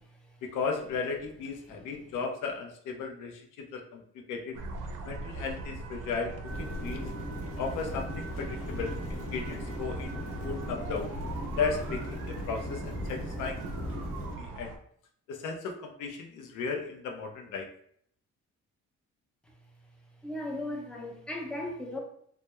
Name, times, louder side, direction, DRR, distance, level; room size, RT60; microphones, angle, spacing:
voice 1, 0.4-4.6 5.1-6.3 6.6-7.1 7.6-11.1 11.6-13.6 14.4-14.7 15.3-17.7, left 5 dB, 80° left, 3 dB, 0.5 m, -35 dB
sound 1, 4.5-14.8, right 3 dB, 80° right, 0.5 m, -41 dB
sound 2, 6.4-14.3, equal, 45° left, 0.9 m, -38 dB
voice 2, 20.2-22.0, left 1 dB, 5° left, 0 dB, 0.5 m, -36 dB
2.2 x 2.1 x 2.9 m, 0.65 s
cardioid pair, 90°, 30 cm